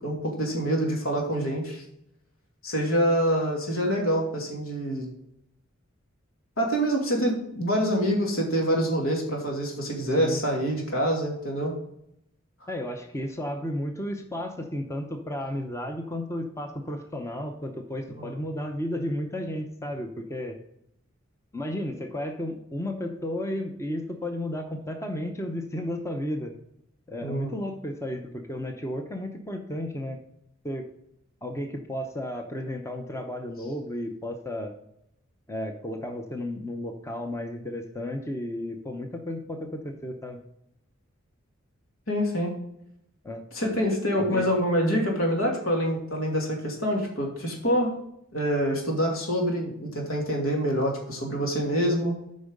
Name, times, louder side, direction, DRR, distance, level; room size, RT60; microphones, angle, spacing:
voice 1, 0.0-1.8 2.6-5.1 6.6-11.7 18.2-18.3 27.2-27.5 42.1-42.5 43.5-47.9 48.3-52.2, equal, 80° left, 0 dB, 2.5 m, -26 dB
voice 2, 12.7-20.6 21.5-26.5 27.1-30.2 30.6-30.8 31.4-34.7 35.5-40.4 43.2-43.4 44.2-44.6, left 1 dB, 15° left, 5 dB, 0.7 m, -33 dB
8.5 x 5.4 x 5.3 m, 0.77 s
head